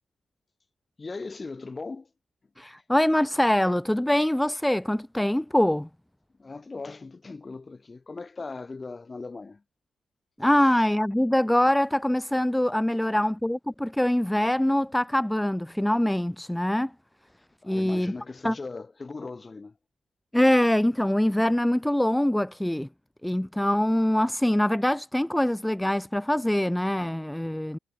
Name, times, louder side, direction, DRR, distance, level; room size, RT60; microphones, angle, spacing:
voice 1, 1.0-2.1 6.4-9.6 13.0-13.2 17.6-19.7, left 3 dB, 25° left, 5.2 m, -39 dB
voice 2, 2.6-5.9 10.4-16.9 17.6-18.1 18.4-18.6 20.3-22.9 23.2-27.8, left 1 dB, 5° left, 1.2 m, -24 dB
cardioid pair, 90°, 0 cm